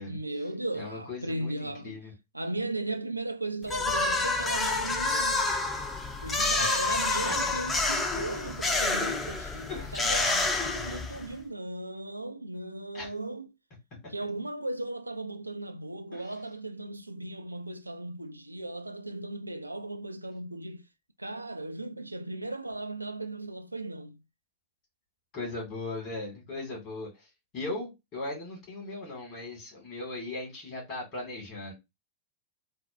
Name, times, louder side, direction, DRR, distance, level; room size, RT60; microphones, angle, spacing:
voice 1, 0.1-2.0 2.3-5.5 6.2-13.5 14.1-20.8 21.2-24.2, right 2 dB, 85° right, 0.3 m, -37 dB
voice 2, 0.7-2.1 6.6-6.7 7.3-7.4 9.7-9.9 12.9-13.1 16.1-16.2 25.3-27.1 27.5-31.7, left 2 dB, 40° left, 2.1 m, -38 dB
sound 1, 3.7-11.3, left 3 dB, 15° left, 0.6 m, -28 dB
4.1 x 2.1 x 2.6 m
figure-of-eight pair, 90°, 0 cm